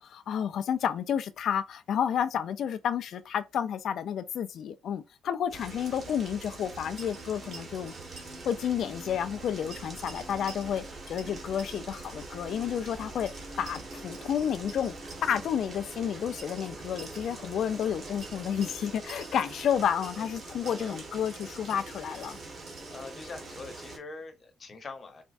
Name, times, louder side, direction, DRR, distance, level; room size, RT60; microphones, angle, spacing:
voice 1, 0.0-7.9 8.4-13.3 13.6-14.9 15.2-22.4, left 8 dB, 70° left, 0.3 m, -31 dB
sound 1, 5.5-24.0, right 2 dB, 45° right, 1.2 m, -43 dB
sound 2, 7.0-8.5 8.7-8.8 9.7-10.9 11.2-12.4 13.3-15.4 16.4-17.4 18.2-20.4 20.7-23.0, right 4 dB, 85° right, 1.8 m, -50 dB
voice 2, 20.6-21.0 22.9-25.2, left 3 dB, 40° left, 0.9 m, -43 dB
4.2 x 2.2 x 2.5 m
cardioid pair, 90°, 0 cm